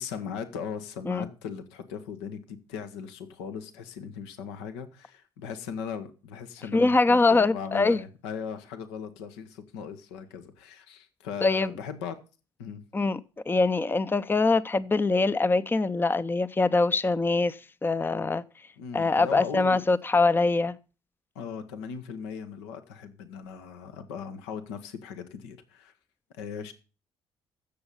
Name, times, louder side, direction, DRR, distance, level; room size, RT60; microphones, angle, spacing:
voice 1, 0.0-12.2 12.6-12.8 18.8-19.8 21.3-25.9 26.3-26.7, left 7 dB, 80° left, 1.3 m, -38 dB
voice 2, 6.7-8.0 11.4-11.7 12.9-13.2 13.5-18.4 18.9-20.8, left 3 dB, 15° left, 0.6 m, -23 dB
15.0 x 7.0 x 5.5 m
hypercardioid pair, 50°, 14 cm